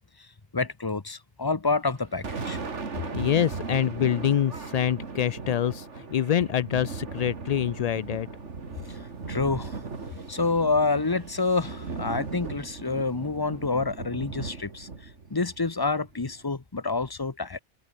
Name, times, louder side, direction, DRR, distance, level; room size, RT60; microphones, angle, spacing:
voice 1, 0.5-2.6 8.9-9.0 9.3-9.8 10.3-14.9 15.3-17.6, left 3 dB, 20° left, 0.9 m, -27 dB
Thunder, 1.9-16.5, right 4 dB, 90° right, 2.5 m, -37 dB
voice 2, 3.1-8.3, left 9 dB, 65° left, 0.4 m, -26 dB
omnidirectional pair, 1.2 m